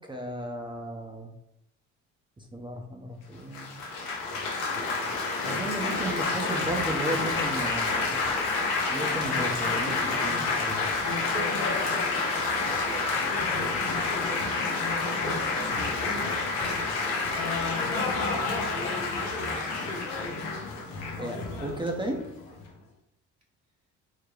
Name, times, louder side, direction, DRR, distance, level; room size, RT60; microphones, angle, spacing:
voice 1, 0.1-1.3 2.5-3.7 5.4-8.2 8.9-9.9 10.2-10.8 21.2-22.2, right 1 dB, 15° right, 1 dB, 0.6 m, -34 dB
Laughter / Applause / Chatter, 3.5-22.7, left 3 dB, 85° left, 0.8 m, -29 dB
voice 2, 11.1-17.1 17.7-18.6, right 2 dB, 45° right, -3 dB, 0.9 m, -44 dB
3.8 x 2.1 x 3.2 m, 0.78 s
supercardioid pair, 70°, 37 cm